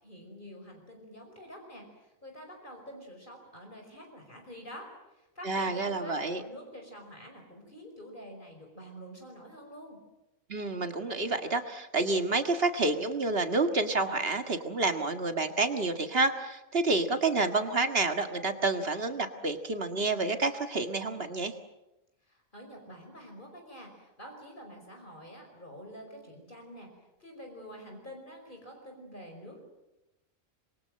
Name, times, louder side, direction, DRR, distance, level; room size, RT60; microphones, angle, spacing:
voice 1, 0.0-10.0 22.2-26.9 27.2-29.6, equal, 40° left, 2 dB, 5.4 m, -47 dB
voice 2, 5.4-6.4 10.5-21.5, right 3 dB, 50° right, 7 dB, 2.0 m, -29 dB
27.0 x 22.5 x 7.7 m, 0.97 s
omnidirectional pair, 1.4 m